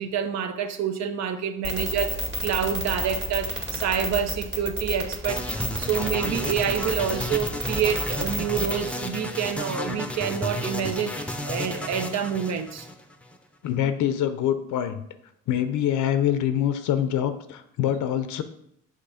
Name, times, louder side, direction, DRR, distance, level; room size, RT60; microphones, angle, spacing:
voice 1, 0.0-12.9, right 8 dB, 65° right, 0.7 m, -28 dB
sound 1, 1.6-8.8, equal, 35° right, 2.0 m, -30 dB
sound 2, 5.3-13.4, left 1 dB, 5° left, 0.6 m, -32 dB
voice 2, 13.6-15.0 15.5-18.4, left 10 dB, 80° left, 0.5 m, -25 dB
6.4 x 2.9 x 5.6 m
cardioid pair, 90°, 30 cm